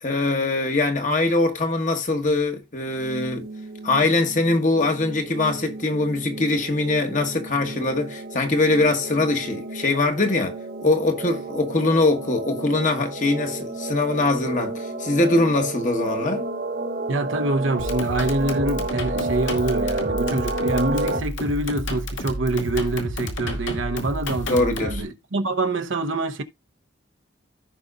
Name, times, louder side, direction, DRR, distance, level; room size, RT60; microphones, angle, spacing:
voice 1, 0.0-3.5 3.8-16.5 24.5-25.0, left 2 dB, 40° left, 1.3 m, -22 dB
sound 1, 2.9-21.2, right 2 dB, 50° right, 1.2 m, -31 dB
voice 2, 17.1-26.4, right 2 dB, 80° right, 0.9 m, -25 dB
Modular Doepfer Beat, 17.8-25.0, left 1 dB, 80° left, 2.2 m, -31 dB
15.5 x 5.2 x 2.4 m
head